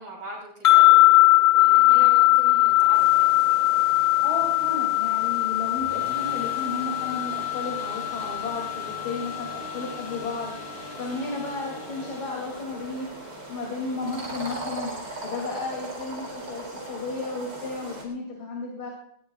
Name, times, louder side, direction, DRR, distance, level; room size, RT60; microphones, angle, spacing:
voice 1, 0.0-3.3, right 1 dB, 80° right, -6 dB, 5.3 m, -41 dB
sound 1, 0.6-9.9, left 20 dB, 45° left, 1.2 m, -20 dB
sound 2, 2.7-12.7, right 1 dB, 5° right, 7.7 m, -44 dB
sound 3, 2.9-18.1, right 2 dB, 55° right, 4.4 m, -40 dB
voice 2, 4.2-18.9, left 3 dB, 85° left, -1 dB, 3.7 m, -34 dB
19.5 x 19.5 x 2.4 m, 0.68 s
omnidirectional pair, 2.2 m